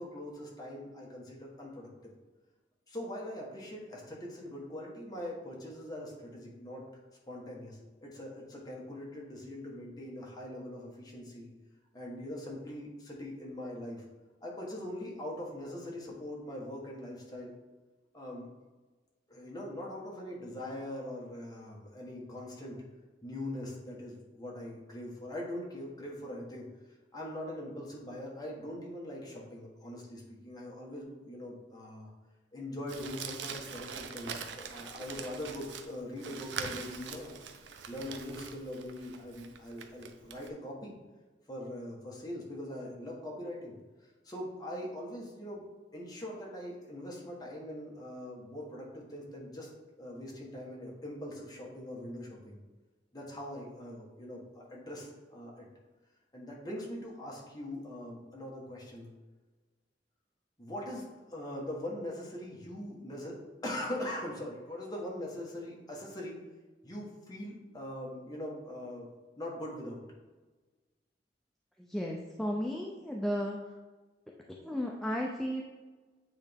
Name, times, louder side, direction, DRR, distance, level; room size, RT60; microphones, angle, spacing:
voice 1, 0.0-1.9 2.9-6.8 7.3-11.5 11.9-14.0 14.4-17.5 18.1-18.5 19.3-22.8 23.2-26.7 27.1-32.1 32.5-37.3 37.9-40.9 41.5-43.7 44.2-45.6 45.9-49.7 50.0-52.6 53.1-55.7 56.3-59.1 60.6-66.4 66.8-69.1 69.4-70.0, left 1 dB, 20° left, -3 dB, 1.3 m, -42 dB
Crumpling crinkling, 32.9-40.5, right 6 dB, 80° right, 0.5 m, -43 dB
voice 2, 71.8-73.7 74.6-75.6, equal, ahead, -1 dB, 0.4 m, -34 dB
8.3 x 3.2 x 3.5 m, 1.3 s
head